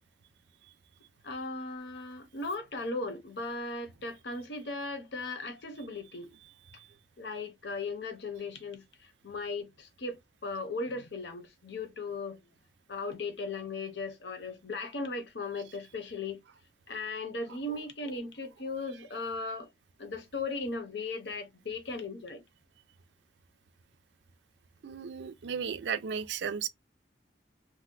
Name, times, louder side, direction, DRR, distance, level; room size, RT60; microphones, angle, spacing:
voice 1, 1.2-6.3 7.2-12.4 12.9-16.4 16.9-19.7 20.0-22.4, left 3 dB, 70° left, 0.8 m, -37 dB
voice 2, 24.8-26.7, right 7 dB, 75° right, 0.4 m, -34 dB
2.7 x 2.2 x 3.6 m
head